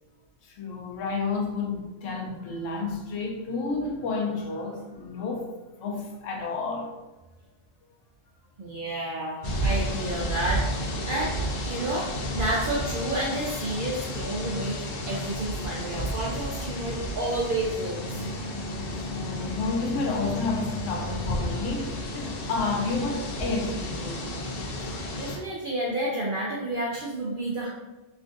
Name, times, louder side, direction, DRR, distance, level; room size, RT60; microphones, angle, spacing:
voice 1, 0.4-5.5 5.8-6.9 19.0-24.3, left 3 dB, 80° left, 1 dB, 1.0 m, -31 dB
voice 2, 8.6-11.3 11.6-14.8 15.1-18.3 25.2-27.7, right 1 dB, 60° right, -4 dB, 0.5 m, -30 dB
sound 1, 9.4-25.4, equal, 60° left, 0.6 m, -32 dB
3.3 x 2.5 x 2.4 m, 1.1 s
omnidirectional pair, 1.3 m